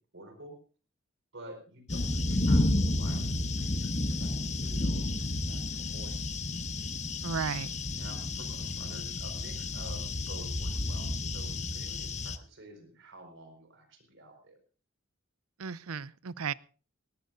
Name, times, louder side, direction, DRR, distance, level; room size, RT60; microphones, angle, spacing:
voice 1, 0.1-0.6 1.3-6.3 7.9-14.6, right 1 dB, 60° right, 5 dB, 5.0 m, -50 dB
sound 1, 1.9-12.4, left 2 dB, 35° left, 1.0 m, -31 dB
voice 2, 7.2-7.8 15.6-16.5, right 6 dB, 90° right, 19 dB, 0.6 m, -34 dB
19.0 x 18.5 x 2.6 m, 0.38 s
head